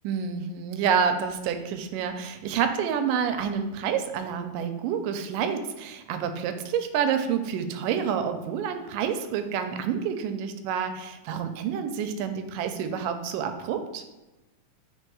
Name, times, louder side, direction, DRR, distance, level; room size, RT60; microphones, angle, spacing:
voice 1, 0.0-14.0, right 7 dB, 80° right, 8 dB, 2.1 m, -28 dB
4.5 x 4.5 x 4.7 m, 1.1 s
omnidirectional pair, 3.9 m